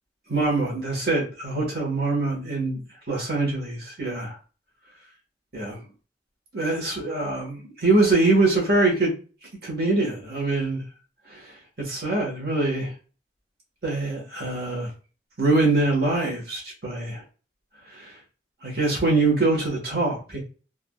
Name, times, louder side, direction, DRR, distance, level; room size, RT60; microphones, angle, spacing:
voice 1, 0.3-4.4 5.5-5.8 6.5-9.1 9.6-10.8 11.3-11.5 11.8-12.9 13.8-14.9 15.4-17.2 17.9-18.2 18.6-20.4, right 2 dB, 60° right, -2 dB, 1.3 m, -24 dB
3.6 x 2.4 x 2.3 m, 0.36 s
head